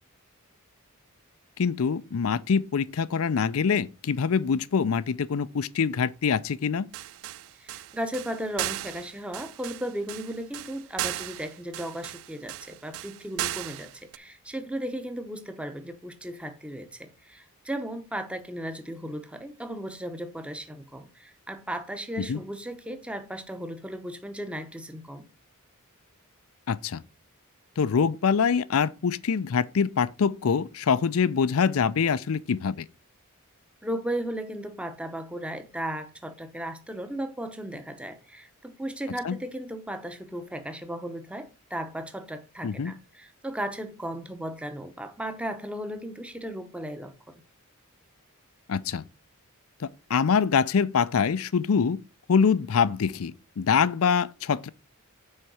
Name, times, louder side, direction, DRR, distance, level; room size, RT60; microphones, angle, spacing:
voice 1, 1.6-6.9 22.3-22.4 26.7-27.0 27.8-32.9 39.2-39.4 42.6-42.9 48.7-49.0 49.8-52.0 52.3-54.7, left 6 dB, 65° left, 0.4 m, -24 dB
sound 1, 6.9-14.2, right 14 dB, 60° right, 0.3 m, -36 dB
voice 2, 7.6-25.3 33.8-47.4, right 1 dB, 5° right, 0.8 m, -36 dB
6.5 x 4.5 x 6.1 m
head